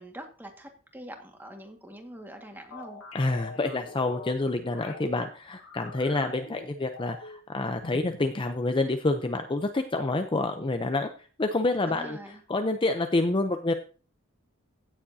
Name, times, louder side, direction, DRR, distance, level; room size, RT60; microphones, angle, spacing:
voice 1, 0.0-3.0 11.9-12.4, right 1 dB, 10° right, 3 dB, 1.7 m, -44 dB
sound 1, 2.7-5.1 5.6-7.4 7.8-8.3, left 3 dB, 85° left, 1.5 m, -44 dB
voice 2, 3.1-11.1 11.4-13.7, left 2 dB, 25° left, 6 dB, 0.6 m, -28 dB
16.0 x 7.2 x 2.7 m, 0.37 s
head